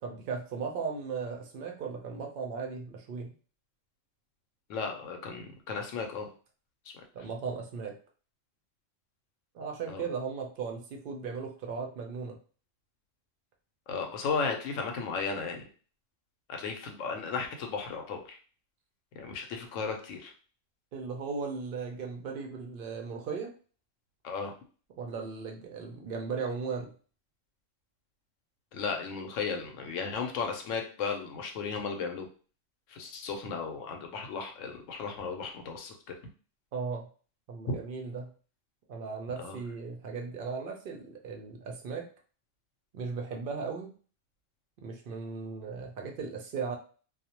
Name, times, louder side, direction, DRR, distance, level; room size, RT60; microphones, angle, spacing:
voice 1, 0.0-3.3 7.1-7.9 9.5-12.4 20.9-23.5 25.0-26.9 36.7-37.1 37.5-38.3 38.9-42.1 42.9-43.9 44.8-46.8, right 5 dB, 65° right, 2 dB, 0.5 m, -37 dB
voice 2, 4.7-6.3 9.9-10.0 13.9-15.6 16.5-18.4 19.2-20.3 24.2-24.6 28.7-32.3 32.9-36.0 37.7-37.8 39.4-39.6, left 5 dB, 75° left, 4 dB, 0.9 m, -35 dB
2.3 x 2.1 x 2.8 m, 0.39 s
omnidirectional pair, 1.3 m